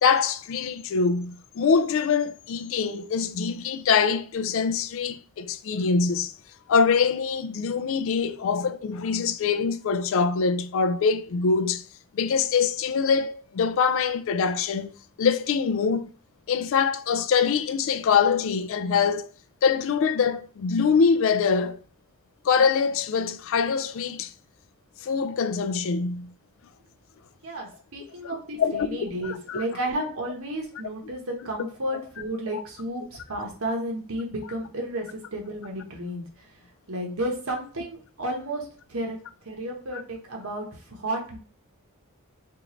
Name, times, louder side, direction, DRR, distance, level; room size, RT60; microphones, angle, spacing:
voice 1, 0.0-6.3 6.7-11.8 12.1-14.9 15.2-16.1 16.5-19.3 19.6-21.8 22.4-24.3 25.0-26.3 28.6-29.6 31.6-31.7 32.5-32.6 39.9-40.0, left 5 dB, 60° left, 0.3 m, -24 dB
voice 2, 27.4-36.2 36.9-38.6 38.9-39.2 39.4-40.6 41.0-41.4, right 1 dB, 75° right, 1.1 m, -32 dB
4.5 x 2.5 x 3.0 m
head